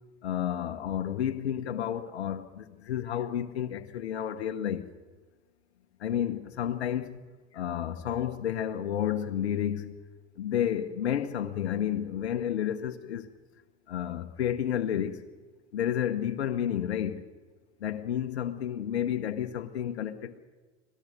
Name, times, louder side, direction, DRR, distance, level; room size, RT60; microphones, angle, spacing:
voice 1, 0.2-4.9 6.0-7.2 7.5-10.0 10.4-13.3 13.9-15.2 15.7-17.2 17.8-20.4, left 10 dB, 80° left, 1.0 m, -31 dB
25.5 x 18.0 x 6.7 m
hypercardioid pair, 70°, 32 cm